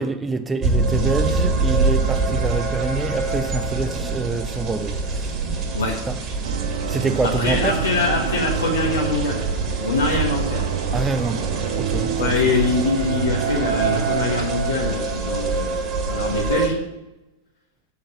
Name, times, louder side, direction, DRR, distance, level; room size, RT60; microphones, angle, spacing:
voice 1, 0.0-5.4 6.1-6.2 6.9-7.8 10.9-12.4, right 3 dB, 15° right, 0.5 m, -26 dB
sound 1, 0.6-16.7, right 3 dB, 30° right, 2.1 m, -25 dB
sound 2, 6.4-14.5, right 8 dB, 60° right, 0.7 m, -28 dB
voice 2, 7.4-9.4 9.8-10.6 12.2-16.8, left 3 dB, 70° left, 1.3 m, -23 dB
8.1 x 5.7 x 7.8 m
figure-of-eight pair, 90°, 0 cm